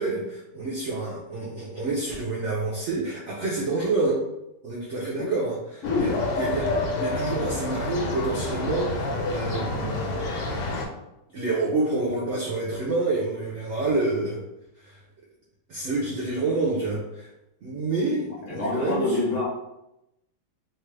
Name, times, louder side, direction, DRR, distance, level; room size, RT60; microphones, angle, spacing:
voice 1, 0.0-4.2 4.6-10.2 11.3-14.4 14.8-15.0 15.7-17.3 17.6-19.2, right 3 dB, 70° right, -4 dB, 0.6 m, -28 dB
sound 1, 5.8-10.9, left 2 dB, 85° left, 1.3 m, -28 dB
voice 2, 18.4-19.4, left 3 dB, 55° left, -5 dB, 0.9 m, -26 dB
2.9 x 2.3 x 3.2 m, 0.88 s
omnidirectional pair, 1.9 m